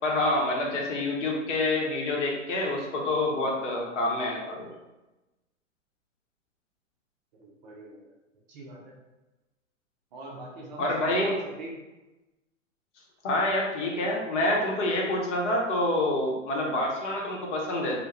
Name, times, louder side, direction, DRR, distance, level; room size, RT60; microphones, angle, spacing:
voice 1, 0.0-4.7 10.8-11.4 13.2-18.0, left 1 dB, 60° left, -1 dB, 0.8 m, -27 dB
voice 2, 7.3-8.1 8.5-8.9 10.1-11.7, right 2 dB, 35° right, -2 dB, 0.4 m, -43 dB
2.2 x 2.0 x 2.9 m, 1.1 s
hypercardioid pair, 120°, 40 cm